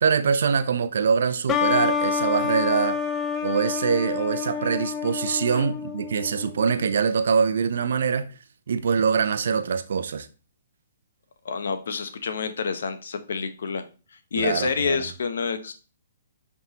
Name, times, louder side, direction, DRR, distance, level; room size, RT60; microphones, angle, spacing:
voice 1, 0.0-3.0 3.4-8.3 8.7-10.3 14.4-15.0, right 6 dB, 65° right, 0.6 m, -24 dB
sound 1, 1.5-6.9, left 6 dB, 20° left, 0.6 m, -28 dB
voice 2, 11.4-13.8 14.3-15.7, left 5 dB, 65° left, 1.0 m, -28 dB
10.5 x 3.6 x 3.0 m
figure-of-eight pair, 125°, 0 cm